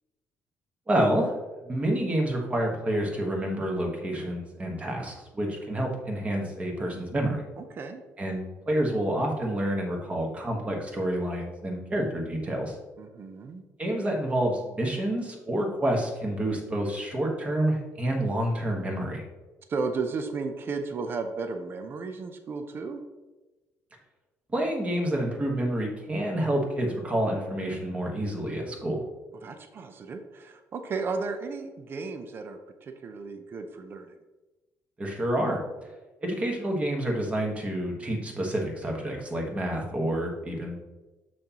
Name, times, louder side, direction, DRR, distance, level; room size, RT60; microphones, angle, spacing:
voice 1, 0.9-1.3 1.6-7.4 8.2-12.8 13.8-19.2 24.5-29.0 35.0-35.6 36.2-40.8, right 1 dB, 20° right, 1 dB, 1.4 m, -28 dB
voice 2, 7.6-8.0 13.0-13.6 19.7-23.0 29.4-34.1, right 4 dB, 40° right, 7 dB, 0.6 m, -34 dB
7.1 x 6.3 x 3.0 m, 1.1 s
cardioid pair, 155°, 6 cm